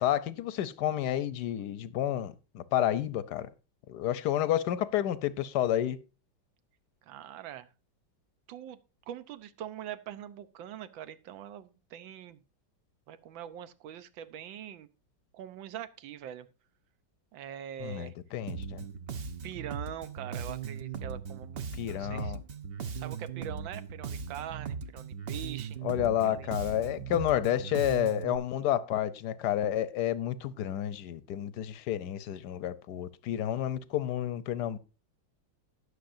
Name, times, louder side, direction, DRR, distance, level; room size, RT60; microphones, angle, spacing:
voice 1, 0.0-3.5 3.9-6.0 17.8-18.9 21.8-22.4 25.8-34.8, left 11 dB, 65° left, 1.1 m, -30 dB
voice 2, 7.0-7.7 8.5-8.8 9.1-12.4 13.1-14.9 15.3-16.5 17.3-18.1 19.4-22.3 22.9-25.8 26.2-26.5, right 10 dB, 80° right, 1.5 m, -43 dB
Bass guitar, 18.5-28.4, right 6 dB, 55° right, 0.6 m, -39 dB
19.0 x 6.7 x 2.6 m
omnidirectional pair, 2.1 m